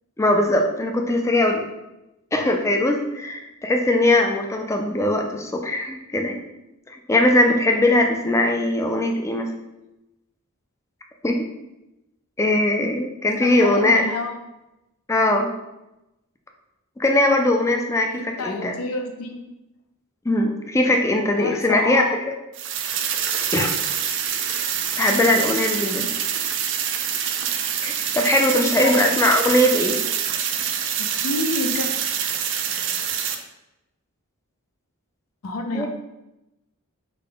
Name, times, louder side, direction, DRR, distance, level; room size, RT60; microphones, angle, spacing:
voice 1, 0.2-1.6 2.3-6.4 6.9-9.5 11.2-11.5 12.4-14.1 15.1-15.5 17.0-18.8 20.3-22.0 23.5-23.8 25.0-26.1 27.8-30.0 35.7-35.9, left 1 dB, 15° left, 3 dB, 0.3 m, -20 dB
voice 2, 13.4-14.3 18.2-19.4 21.4-22.2 28.6-29.2 31.0-31.9 35.4-35.9, left 2 dB, 80° left, 4 dB, 0.5 m, -29 dB
sound 1, 22.5-33.3, right 8 dB, 60° right, 0.4 m, -25 dB
3.7 x 2.2 x 3.9 m, 0.94 s
head